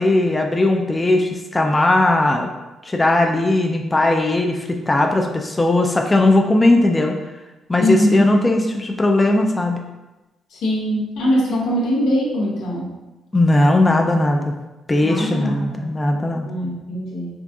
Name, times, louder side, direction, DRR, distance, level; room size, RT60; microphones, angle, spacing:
voice 1, 0.0-2.5 2.8-7.2 7.7-9.8 13.3-14.5 14.9-16.5, left 2 dB, 20° left, 3 dB, 0.3 m, -18 dB
voice 2, 7.8-8.3 10.5-13.0 15.0-15.8 16.4-17.3, left 1 dB, 90° left, -3 dB, 0.8 m, -22 dB
3.7 x 2.6 x 2.3 m, 1.1 s
cardioid pair, 90°, 0 cm